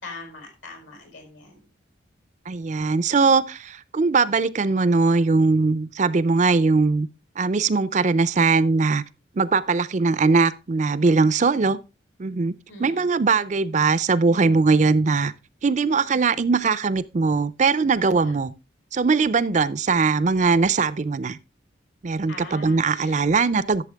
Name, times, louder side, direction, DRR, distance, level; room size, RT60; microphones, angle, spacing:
voice 1, 0.0-1.6 12.7-13.1 22.3-23.2, left 3 dB, 75° left, 4.8 m, -41 dB
voice 2, 2.5-7.1 7.4-9.0 9.4-11.8 12.2-12.5 12.8-15.3 15.6-18.5 18.9-21.4 22.0-23.8, right 4 dB, 35° right, 0.4 m, -20 dB
12.0 x 7.1 x 3.4 m
head